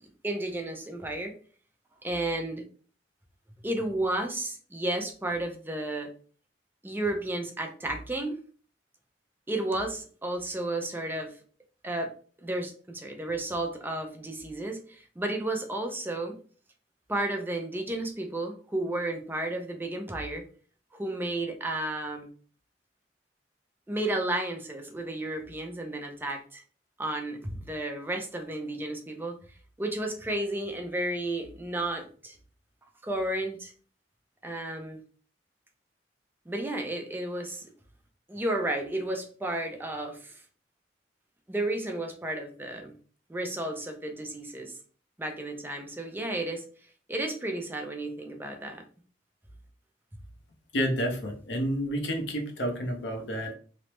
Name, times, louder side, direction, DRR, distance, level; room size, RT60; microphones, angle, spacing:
voice 1, 0.2-1.3 2.0-2.6 3.6-6.1 6.8-8.4 9.5-11.3 11.8-12.1 12.4-16.4 17.1-20.5 20.9-22.3 23.9-26.6 27.0-29.4 29.8-32.4 33.0-33.7 34.4-35.0 36.5-37.6 38.3-40.4 41.5-42.9 43.3-44.7 45.2-46.6 47.1-48.8, right 1 dB, 10° right, 4 dB, 0.5 m, -32 dB
voice 2, 50.7-53.5, equal, 80° left, 4 dB, 0.7 m, -30 dB
3.1 x 2.0 x 3.0 m, 0.41 s
head